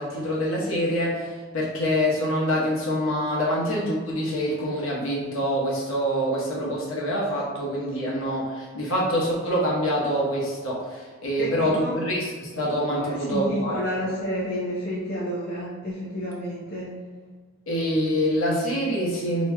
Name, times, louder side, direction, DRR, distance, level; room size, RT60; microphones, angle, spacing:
voice 1, 0.0-13.9 17.7-19.5, equal, 70° left, -5 dB, 1.0 m, -25 dB
voice 2, 11.4-12.0 12.9-17.0, equal, 45° left, -8 dB, 0.6 m, -30 dB
4.1 x 2.9 x 2.2 m, 1.5 s
head